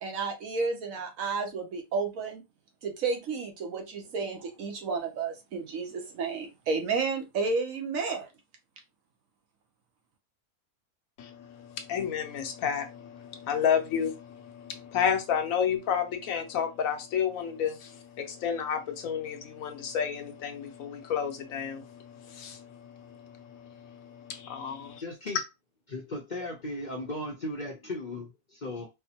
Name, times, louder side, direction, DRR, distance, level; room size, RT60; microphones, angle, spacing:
voice 1, 0.0-2.4 2.8-8.3, right 4 dB, 70° right, 1.2 m, -31 dB
voice 2, 11.2-25.0, left 8 dB, 75° left, 1.0 m, -31 dB
voice 3, 25.0-25.4 25.9-28.9, left 1 dB, 45° left, 0.6 m, -36 dB
4.4 x 2.1 x 2.8 m
omnidirectional pair, 1.5 m